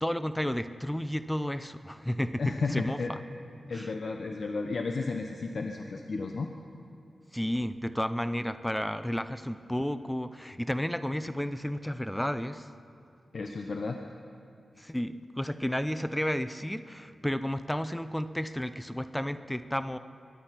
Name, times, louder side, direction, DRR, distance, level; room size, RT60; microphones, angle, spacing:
voice 1, 0.0-3.2 3.7-3.9 7.3-12.7 14.8-20.0, equal, 5° left, 12 dB, 0.5 m, -32 dB
voice 2, 2.4-3.1 3.7-6.5 13.3-14.0, left 4 dB, 60° left, 4 dB, 0.8 m, -33 dB
23.0 x 10.5 x 5.8 m, 2.5 s
wide cardioid pair, 100°, 0 cm